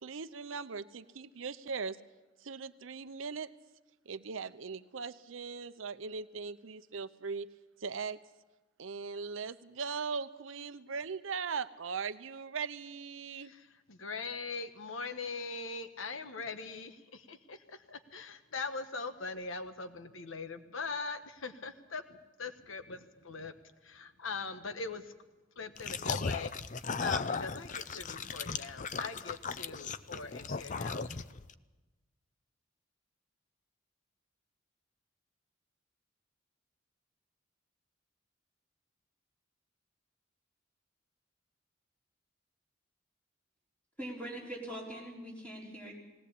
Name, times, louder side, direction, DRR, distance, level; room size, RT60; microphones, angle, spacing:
voice 1, 0.0-2.0 2.4-3.5 4.1-7.5 7.8-8.2 8.8-13.5, right 5 dB, 80° right, 13 dB, 0.7 m, -39 dB
voice 2, 13.9-22.0 22.4-23.5 23.8-25.1 25.6-26.5 27.0-31.0, left 4 dB, 85° left, 10 dB, 1.2 m, -41 dB
sound 1, 25.8-31.5, left 5 dB, 40° left, 0.6 m, -36 dB
voice 3, 44.0-45.9, right 1 dB, 5° left, -3 dB, 4.5 m, -42 dB
19.0 x 18.0 x 8.4 m, 1.2 s
head